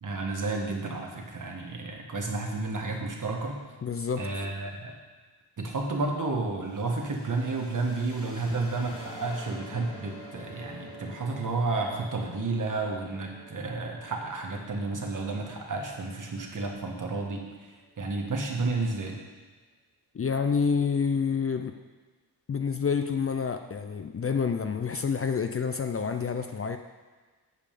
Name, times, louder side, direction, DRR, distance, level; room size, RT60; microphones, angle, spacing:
voice 1, 0.0-3.6 4.2-4.9 5.6-17.4 18.0-19.2, right 3 dB, 50° right, 1 dB, 1.4 m, -31 dB
voice 2, 3.8-4.2 20.1-21.7 22.5-26.8, left 6 dB, 35° left, 7 dB, 0.5 m, -28 dB
sound 1, 6.6-18.3, left 1 dB, 80° left, 2.1 m, -49 dB
8.3 x 5.6 x 6.9 m, 1.4 s
wide cardioid pair, 135°, 39 cm